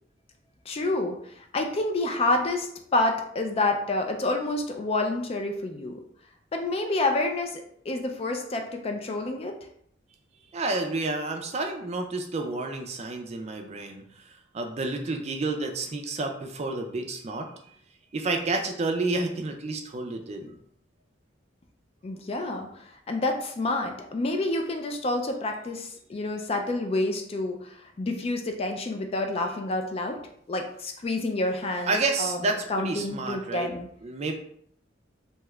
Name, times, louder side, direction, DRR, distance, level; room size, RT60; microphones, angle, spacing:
voice 1, 0.7-6.0 6.5-9.6 22.0-30.2 30.5-33.9, left 2 dB, 30° left, 4 dB, 0.4 m, -28 dB
voice 2, 10.5-14.0 14.5-17.5 18.1-20.6 31.9-33.7 34.0-34.3, right 3 dB, 35° right, 4 dB, 0.4 m, -30 dB
2.8 x 2.3 x 3.1 m, 0.66 s
head